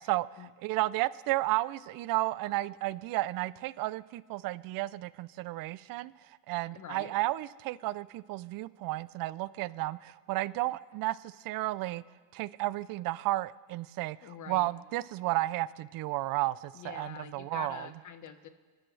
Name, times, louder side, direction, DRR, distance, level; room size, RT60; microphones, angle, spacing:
voice 1, 0.6-6.1 6.5-12.0 12.3-14.2 14.5-17.9, right 18 dB, 50° right, 19 dB, 0.5 m, -32 dB
voice 2, 6.7-7.1 14.2-14.7 16.7-18.5, left 9 dB, 40° left, 9 dB, 1.3 m, -45 dB
29.5 x 10.5 x 3.3 m, 1.5 s
supercardioid pair, 105°, 45 cm